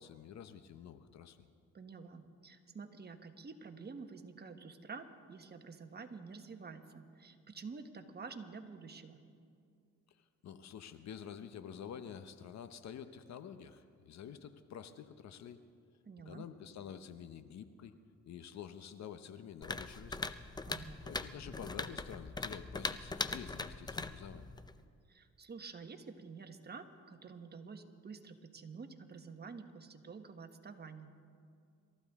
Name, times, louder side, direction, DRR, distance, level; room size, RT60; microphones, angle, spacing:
voice 1, 0.0-1.5 10.4-15.6 16.3-18.0 18.2-20.3 21.1-24.5, left 8 dB, 65° left, 11 dB, 0.9 m, -49 dB
voice 2, 1.7-9.2 16.1-16.5 20.7-21.0 25.1-31.1, right 4 dB, 35° right, 6 dB, 1.3 m, -49 dB
sound 1, 19.6-24.8, left 3 dB, 15° left, 0.6 m, -41 dB
27.0 x 14.0 x 3.6 m, 2.3 s
cardioid pair, 90°, 30 cm